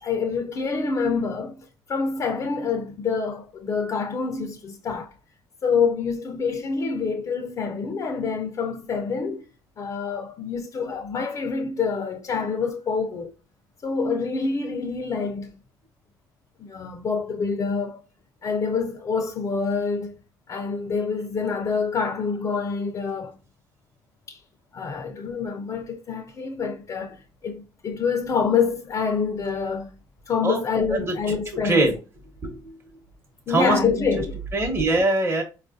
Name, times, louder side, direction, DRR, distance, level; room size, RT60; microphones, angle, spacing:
voice 1, 0.0-5.1 5.6-9.5 9.8-13.3 13.8-15.5 16.6-18.0 18.4-20.1 20.5-23.3 24.3-24.4 24.7-30.0 30.3-31.9 33.5-34.4, left 5 dB, 40° left, 0.5 m, -26 dB
voice 2, 30.9-31.4 31.6-32.0 32.4-32.6 33.5-33.8 34.5-35.4, right 2 dB, 30° right, 1.0 m, -22 dB
4.3 x 2.4 x 2.5 m
supercardioid pair, 85°, 9 cm